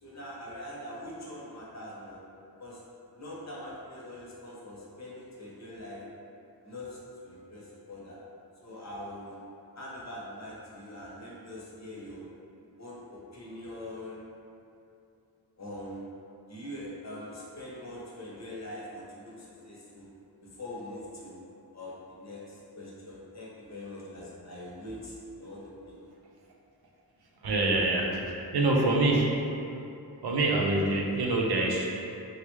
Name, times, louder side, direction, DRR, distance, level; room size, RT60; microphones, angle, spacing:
voice 1, 0.0-2.2 2.6-2.8 3.2-6.0 6.6-8.2 8.6-9.4 9.7-12.3 12.8-14.2 15.6-16.0 16.5-20.1 20.4-21.4 21.7-26.1, left 1 dB, 45° left, -5 dB, 0.8 m, -43 dB
voice 2, 27.4-29.3 30.2-32.0, right 2 dB, 85° right, -1 dB, 0.5 m, -26 dB
3.4 x 2.2 x 3.0 m, 2.6 s
wide cardioid pair, 80°, 37 cm